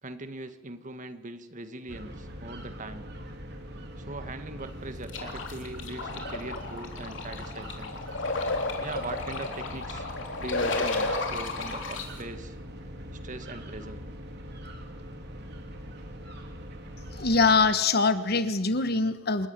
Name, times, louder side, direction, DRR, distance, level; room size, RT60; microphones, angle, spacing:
voice 1, 0.0-3.1 4.0-8.0 8.8-10.1 10.4-12.6 13.2-14.0, right 2 dB, 40° right, 9 dB, 1.8 m, -41 dB
sound 1, 1.9-17.7, equal, 60° right, 3.1 m, -42 dB
sound 2, 5.1-12.0, left 3 dB, 70° left, 3.4 m, -32 dB
voice 2, 17.1-19.5, left 4 dB, 55° left, 11 dB, 1.4 m, -23 dB
28.0 x 14.5 x 9.7 m, 1.1 s
head